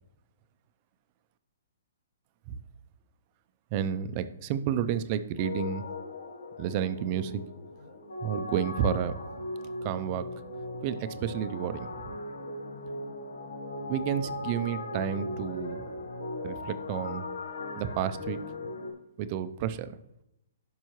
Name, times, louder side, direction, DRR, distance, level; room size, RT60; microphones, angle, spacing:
voice 1, 3.7-5.8 6.6-7.3 8.2-9.2 9.8-10.3 10.8-12.0 13.9-15.8 16.4-17.3 17.8-18.4 19.2-20.0, right 9 dB, 35° right, 11 dB, 0.5 m, -31 dB
sound 1, 5.4-18.9, left 2 dB, 85° left, 1.2 m, -38 dB
11.0 x 5.5 x 3.1 m, 0.83 s
hypercardioid pair, 150°, 0 cm